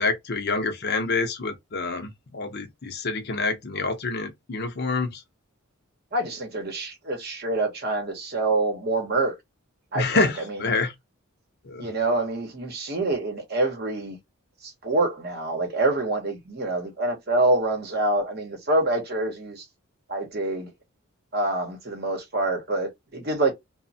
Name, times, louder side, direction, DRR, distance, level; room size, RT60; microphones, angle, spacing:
voice 1, 0.0-5.2 9.9-10.9 11.7-11.9, left 3 dB, 50° left, 0.6 m, -27 dB
voice 2, 6.1-9.4 9.9-10.7 11.8-14.2 14.6-19.6 20.1-20.7 21.3-23.5, right 2 dB, 45° right, 0.8 m, -26 dB
3.0 x 2.0 x 2.7 m
head